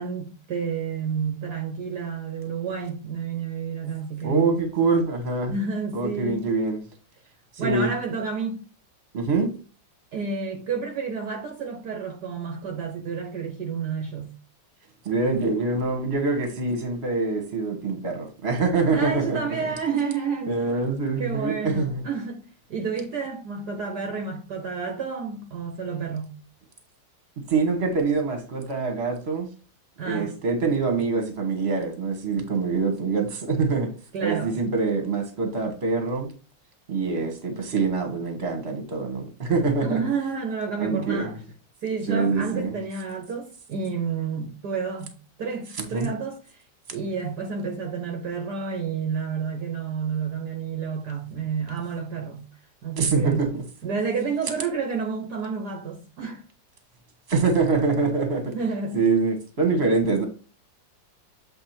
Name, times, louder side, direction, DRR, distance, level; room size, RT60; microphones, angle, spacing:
voice 1, 0.0-4.5 5.5-6.5 7.6-8.6 10.1-14.3 18.9-20.7 21.2-26.3 30.0-30.3 34.1-34.6 39.8-41.4 41.8-45.1 45.4-46.6 46.9-52.5 52.8-53.5 53.8-56.4 58.5-59.0, right 5 dB, 65° right, 1.4 m, -30 dB
voice 2, 4.2-5.5 5.9-6.8 7.6-7.9 9.1-9.5 15.0-19.4 20.5-22.0 27.5-29.5 30.0-33.9 34.2-36.3 36.9-40.0 40.8-41.3 42.1-42.8 45.8-46.1 53.0-53.6 57.3-58.5 58.9-60.2, right 4 dB, 35° right, 1.7 m, -24 dB
7.8 x 3.4 x 4.3 m
omnidirectional pair, 2.0 m